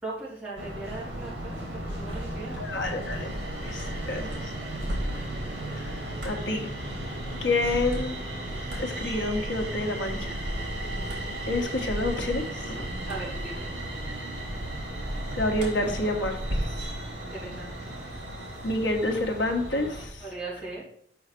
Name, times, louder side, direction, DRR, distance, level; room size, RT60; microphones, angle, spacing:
voice 1, 0.0-2.6 13.1-13.7 17.3-17.9 20.2-20.8, right 2 dB, 5° right, -9 dB, 3.2 m, -38 dB
sound 1, 0.6-20.1, right 1 dB, 65° right, 3.1 m, -34 dB
voice 2, 2.6-3.3 3.6-4.5 5.7-5.8 6.2-6.8 7.4-8.1 8.8-10.4 11.5-12.9 15.4-16.9 18.6-20.2, left 2 dB, 80° left, 2 dB, 1.4 m, -29 dB
5.8 x 5.6 x 6.1 m, 0.65 s
head